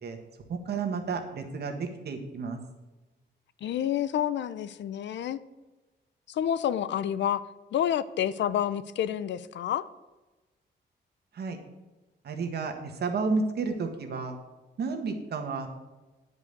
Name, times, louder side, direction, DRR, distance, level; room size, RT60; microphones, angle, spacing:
voice 1, 0.5-2.6 11.3-11.6 12.2-14.4 14.8-15.7, right 4 dB, 60° right, 5 dB, 1.6 m, -31 dB
voice 2, 3.6-5.4 6.3-7.4 7.7-9.9, left 10 dB, 70° left, 16 dB, 0.5 m, -29 dB
9.7 x 5.5 x 8.1 m, 1.1 s
cardioid pair, 135°, 19 cm